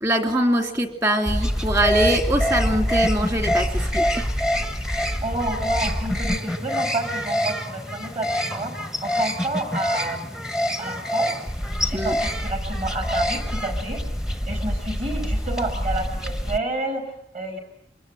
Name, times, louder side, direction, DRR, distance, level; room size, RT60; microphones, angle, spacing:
voice 1, 0.0-4.3 11.9-12.2, right 1 dB, 20° right, 5 dB, 2.9 m, -23 dB
sound 1, 1.3-16.6, equal, 5° right, 1.2 m, -25 dB
voice 2, 5.2-8.7 9.0-10.3 10.8-11.4 11.8-14.0 14.5-17.0 17.3-17.6, right 2 dB, 35° right, 6 dB, 6.0 m, -29 dB
25.5 x 22.0 x 10.0 m, 0.77 s
head